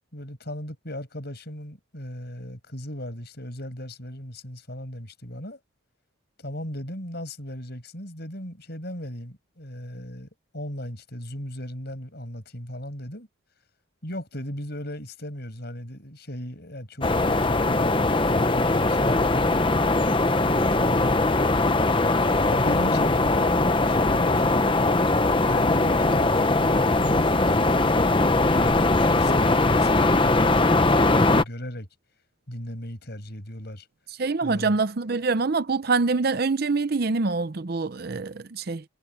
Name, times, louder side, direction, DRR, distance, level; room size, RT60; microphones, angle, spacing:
voice 1, 0.1-5.6 6.4-13.3 14.0-20.0 20.4-22.0 22.5-25.0 25.5-31.9 32.5-33.9 34.4-34.8, equal, 50° left, 7.1 m, -37 dB
sound 1, 17.0-31.4, left 2 dB, 25° left, 0.9 m, -21 dB
voice 2, 34.2-38.8, right 4 dB, 45° right, 0.6 m, -25 dB
head